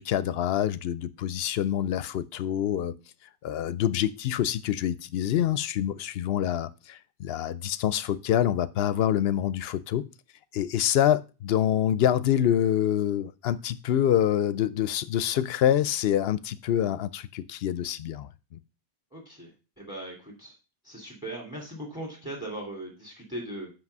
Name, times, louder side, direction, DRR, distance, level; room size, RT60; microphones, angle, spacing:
voice 1, 0.0-2.9 3.4-10.1 10.5-18.6, left 10 dB, 70° left, 0.8 m, -26 dB
voice 2, 19.1-19.5 19.8-20.5 20.8-23.7, right 1 dB, 5° right, 2.5 m, -39 dB
6.0 x 5.1 x 6.5 m
omnidirectional pair, 1.1 m